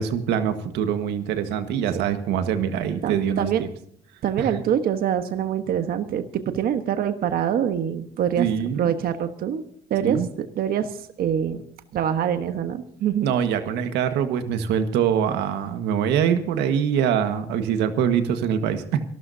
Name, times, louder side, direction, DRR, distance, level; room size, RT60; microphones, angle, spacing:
voice 1, 0.0-3.7 4.4-4.5 8.4-8.9 10.0-10.3 13.2-19.0, right 8 dB, 85° right, 9 dB, 1.7 m, -24 dB
voice 2, 3.0-3.6 4.2-8.5 8.8-9.6 9.9-11.6 11.9-13.3, right 9 dB, 60° right, 8 dB, 1.3 m, -25 dB
26.5 x 13.0 x 2.8 m, 0.64 s
cardioid pair, 110°, 17 cm